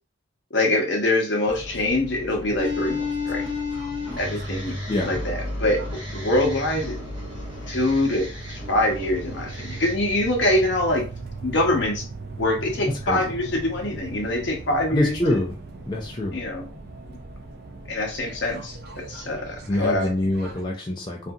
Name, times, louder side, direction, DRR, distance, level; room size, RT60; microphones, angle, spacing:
voice 1, 0.5-3.4 4.2-4.8 5.0-5.8 6.1-7.0 7.7-11.0 11.4-12.0 12.4-15.4 16.3-16.7 17.9-20.1, left 1 dB, 65° left, 2 dB, 0.7 m, -24 dB
sound 1, 1.5-20.6, right 2 dB, 50° right, 0.4 m, -39 dB
sound 2, 2.6-9.9, left 3 dB, 25° right, 0.9 m, -32 dB
voice 2, 13.0-13.3 14.9-15.5 15.9-16.4 19.7-21.3, left 1 dB, 25° left, 0 dB, 0.3 m, -25 dB
2.6 x 2.5 x 2.3 m, 0.35 s
head